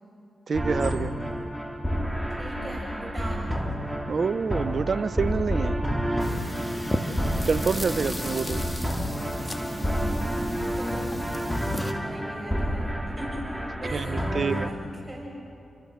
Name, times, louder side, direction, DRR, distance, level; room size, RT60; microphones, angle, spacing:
sound 1, 0.5-14.7, equal, 5° right, 2.9 m, -30 dB
voice 1, 0.5-1.2 4.1-5.8 7.5-8.6 13.9-14.7, right 5 dB, 60° right, 15 dB, 0.8 m, -27 dB
voice 2, 2.4-3.6 6.8-7.4 9.0-13.4 13.8-14.2 14.5-15.4, right 1 dB, 20° right, -2 dB, 8.0 m, -40 dB
sound 2, 6.2-11.9, left 1 dB, 20° left, 2.6 m, -34 dB
30.0 x 25.0 x 6.7 m, 2.7 s
supercardioid pair, 40°, 0 cm